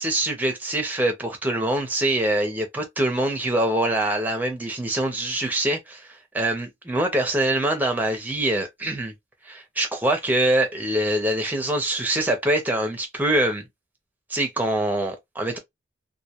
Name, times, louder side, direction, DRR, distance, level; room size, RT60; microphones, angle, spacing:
voice 1, 0.0-6.1 6.3-9.1 9.5-13.7 14.3-15.6, right 1 dB, 10° right, 0.6 m, -24 dB
2.2 x 2.1 x 2.9 m
head